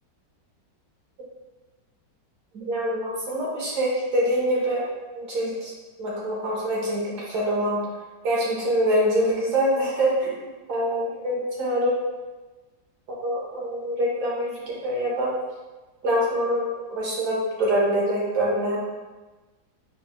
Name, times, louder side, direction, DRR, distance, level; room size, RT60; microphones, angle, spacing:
voice 1, 2.5-4.8 5.1-5.7 6.0-7.8 8.2-10.4 10.7-11.9 13.1-15.3 16.0-18.8, equal, 65° right, -5 dB, 1.6 m, -25 dB
4.3 x 3.9 x 2.2 m, 1.2 s
omnidirectional pair, 1.9 m